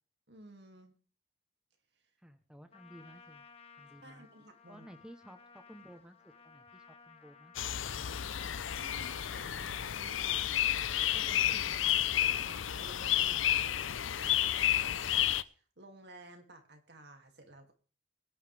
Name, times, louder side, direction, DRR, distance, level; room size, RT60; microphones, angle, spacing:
voice 1, 0.3-1.0 4.0-4.9 8.7-17.7, right 1 dB, 60° right, 4 dB, 2.5 m, -55 dB
voice 2, 2.2-3.4 3.7-4.3 4.7-7.5 7.8-8.3, equal, 5° right, 7 dB, 0.9 m, -55 dB
Trumpet, 2.7-10.0, left 6 dB, 30° left, 1.4 m, -58 dB
sound 1, 7.5-15.4, left 11 dB, 85° left, 0.6 m, -31 dB
22.0 x 10.5 x 3.4 m, 0.39 s
head